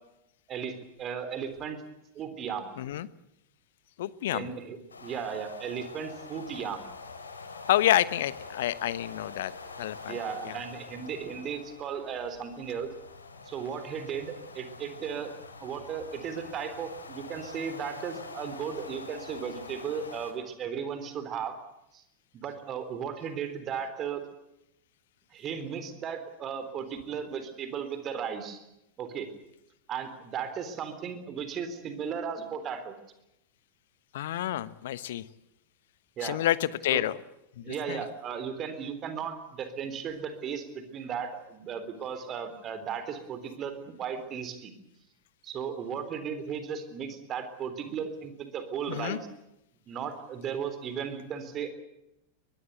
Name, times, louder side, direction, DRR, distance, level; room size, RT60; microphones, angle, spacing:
voice 1, 0.5-1.8 2.2-2.8 4.3-6.9 10.1-12.9 13.5-15.3 15.6-21.5 21.9-22.0 22.3-24.2 25.3-28.6 29.0-29.3 29.9-33.0 36.2-36.4 36.9-37.0 37.6-44.7 45.4-49.3 49.9-51.7, right 7 dB, 30° right, 10 dB, 3.7 m, -36 dB
voice 2, 2.8-3.1 4.0-4.5 7.7-9.5 9.8-10.2 10.4-10.6 34.1-35.2 36.2-37.1 37.6-38.0 48.9-49.2, left 13 dB, 55° left, 18 dB, 1.1 m, -28 dB
sound 1, 4.9-20.3, left 4 dB, 75° left, 3.4 m, -45 dB
22.5 x 22.0 x 8.1 m, 0.86 s
figure-of-eight pair, 90°, 0 cm